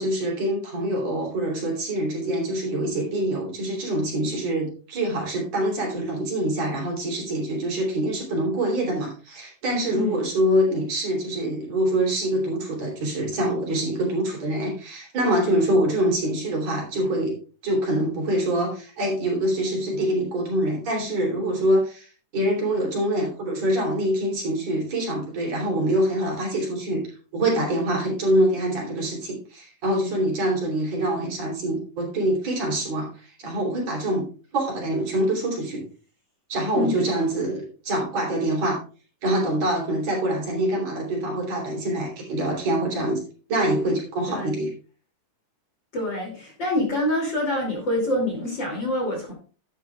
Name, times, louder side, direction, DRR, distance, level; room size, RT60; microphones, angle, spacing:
voice 1, 0.0-17.4 17.6-27.0 27.3-34.3 34.5-35.8 36.5-38.8 39.2-43.2 43.5-44.7, right 1 dB, 55° right, -1 dB, 4.1 m, -25 dB
voice 2, 36.7-37.1 44.3-44.5 45.9-49.3, left 1 dB, 35° left, 0 dB, 3.1 m, -26 dB
12.0 x 9.4 x 2.4 m, 0.37 s
omnidirectional pair, 3.8 m